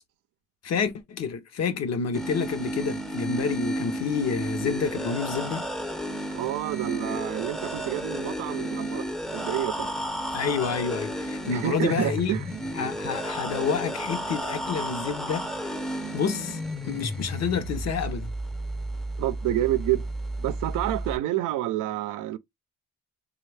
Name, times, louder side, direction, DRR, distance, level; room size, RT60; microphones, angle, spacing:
voice 1, 0.6-5.7 10.3-12.3 12.7-15.7 16.1-16.6 16.8-18.3, left 6 dB, 60° left, 0.8 m, -29 dB
sound 1, 2.1-21.2, right 1 dB, ahead, 0.5 m, -32 dB
voice 2, 6.3-9.1 9.3-9.9 11.5-12.4 19.2-20.1 20.4-22.4, right 14 dB, 85° right, 0.5 m, -28 dB
3.2 x 2.4 x 3.2 m
cardioid pair, 90°, 30 cm